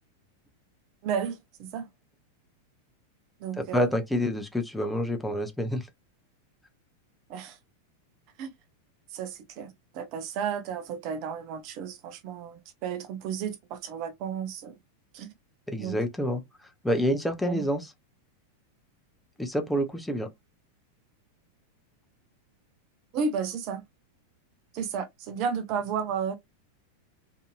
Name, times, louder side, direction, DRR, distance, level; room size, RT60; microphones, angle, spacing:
voice 1, 1.0-1.9 3.4-3.9 7.3-7.6 8.4-8.5 9.1-14.8 15.1-15.3 15.8-16.0 17.4-17.7 23.1-23.8 24.7-26.4, right 6 dB, 40° right, 0.5 m, -33 dB
voice 2, 3.6-5.9 15.7-16.4 16.8-17.9 19.4-20.3, equal, 5° left, 0.6 m, -27 dB
2.7 x 2.6 x 2.4 m
figure-of-eight pair, 90°, 0 cm